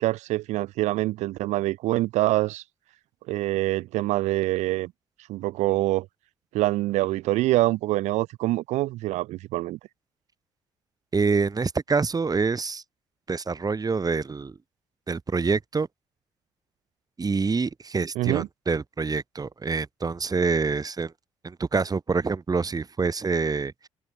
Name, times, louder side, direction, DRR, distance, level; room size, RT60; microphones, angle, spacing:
voice 1, 0.0-2.6 3.3-4.9 5.3-6.1 6.5-9.8 18.2-18.5, right 17 dB, 80° right, 2.3 m, -25 dB
voice 2, 11.1-12.8 13.3-14.5 15.1-15.9 17.2-21.1 21.4-23.9, right 4 dB, 30° right, 2.7 m, -26 dB
hypercardioid pair, 55°, 12 cm